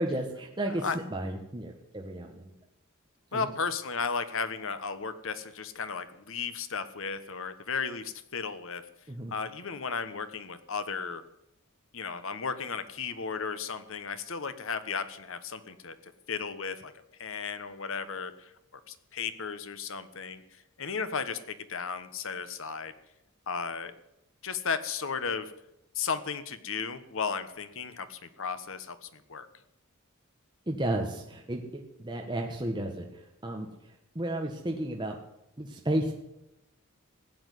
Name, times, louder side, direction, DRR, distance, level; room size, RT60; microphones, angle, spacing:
voice 1, 0.0-2.5 3.3-3.5 9.1-9.3 30.7-35.2 35.6-36.1, right 1 dB, 20° right, 1 dB, 1.4 m, -33 dB
voice 2, 3.3-8.8 9.3-11.2 11.9-15.9 16.3-16.9 17.2-18.5 18.9-20.4 20.8-22.9 23.5-23.9 24.4-25.5 25.9-29.5, left 5 dB, 65° left, 11 dB, 1.3 m, -34 dB
16.0 x 8.9 x 9.4 m, 0.86 s
head